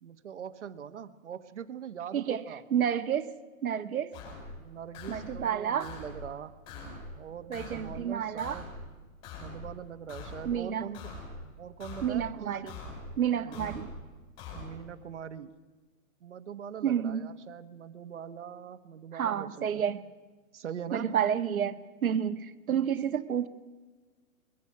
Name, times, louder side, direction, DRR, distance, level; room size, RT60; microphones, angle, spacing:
voice 1, 0.0-2.6 4.6-8.7 9.4-11.1 11.6-12.5 13.4-13.8 14.5-15.5 16.2-19.8 20.5-21.1 23.0-23.1, right 8 dB, 55° right, 10 dB, 1.3 m, -42 dB
voice 2, 2.1-3.3 3.6-4.1 5.1-5.9 7.5-8.6 10.4-10.9 12.0-12.8 13.2-13.9 16.8-17.2 19.1-20.0 20.9-23.5, right 9 dB, 85° right, 9 dB, 1.5 m, -30 dB
sound 1, 4.1-4.5 4.9-5.4 5.8-6.2 6.7-7.1 7.5-7.9 8.4-8.8 9.2-9.7 10.1-10.5 10.9-11.4 11.8-12.2 12.7-13.1 13.5-13.9 14.4-14.7, left 3 dB, 20° left, 5.9 m, -43 dB
24.5 x 22.5 x 5.6 m, 1.3 s
hypercardioid pair, 175°, 41 cm